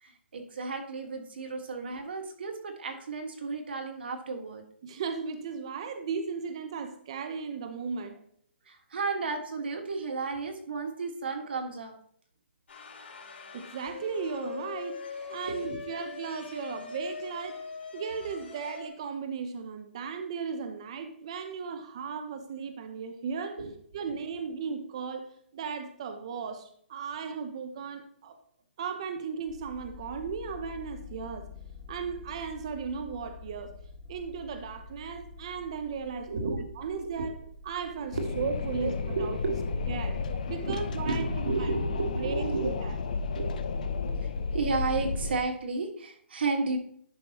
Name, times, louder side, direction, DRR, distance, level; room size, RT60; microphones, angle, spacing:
voice 1, 0.0-4.6 8.7-11.9 15.5-15.8 23.6-23.7 36.3-36.6 37.2-37.3 38.2-38.4 38.8-39.7 40.3-42.7 43.2-43.6 44.2-46.8, right 4 dB, 60° right, 4 dB, 1.7 m, -33 dB
voice 2, 4.8-8.2 13.5-17.6 17.9-23.6 23.9-28.4 28.8-31.5 31.9-33.7 34.1-37.4 37.6-39.4 39.9-40.2 40.5-41.7 42.1-43.0, right 5 dB, 30° right, 7 dB, 0.6 m, -36 dB
sound 1, 12.7-18.9, left 5 dB, 70° left, 3.2 m, -41 dB
sound 2, 29.4-42.1, left 4 dB, 20° left, 1.6 m, -48 dB
Wind, 38.1-45.4, left 4 dB, 40° left, 0.6 m, -32 dB
11.0 x 5.3 x 3.0 m, 0.63 s
hypercardioid pair, 175°, 6 cm